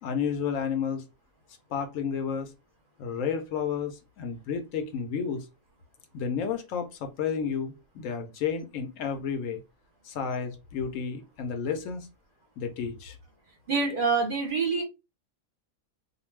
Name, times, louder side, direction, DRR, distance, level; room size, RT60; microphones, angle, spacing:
voice 1, 0.0-1.0 1.7-2.5 3.0-5.5 6.1-9.6 10.0-12.1 12.6-13.2, left 6 dB, 75° left, 0.9 m, -31 dB
voice 2, 13.7-14.8, right 4 dB, 45° right, 0.8 m, -26 dB
2.4 x 2.2 x 3.1 m
omnidirectional pair, 1.4 m